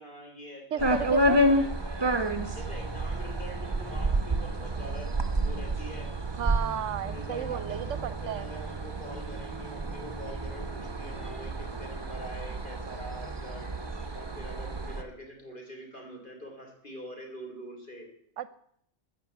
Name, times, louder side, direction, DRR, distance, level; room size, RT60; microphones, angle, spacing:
voice 1, 0.0-2.2 2.5-5.2 5.4-6.1 7.0-13.8 14.1-18.1, equal, 40° left, 1 dB, 3.7 m, -44 dB
voice 2, 0.7-1.4 6.4-8.5 18.4-18.5, right 8 dB, 75° right, 15 dB, 1.0 m, -33 dB
sound 1, 0.8-15.0, right 1 dB, 20° right, 1.0 m, -30 dB
14.0 x 6.5 x 8.5 m, 0.70 s
omnidirectional pair, 1.3 m